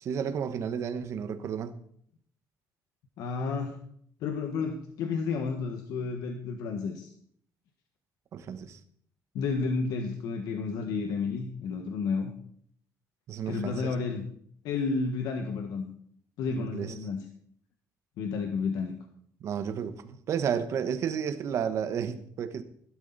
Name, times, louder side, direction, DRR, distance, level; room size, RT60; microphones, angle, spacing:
voice 1, 0.0-1.8 8.3-8.8 13.3-13.9 16.5-16.9 19.4-22.6, right 7 dB, 50° right, 10 dB, 1.3 m, -32 dB
voice 2, 3.2-3.8 4.2-7.1 9.3-12.3 13.5-14.3 14.6-15.9 16.4-17.2 18.2-19.0, left 4 dB, 80° left, 4 dB, 1.5 m, -31 dB
16.0 x 12.0 x 4.2 m, 0.63 s
cardioid pair, 165°, 6 cm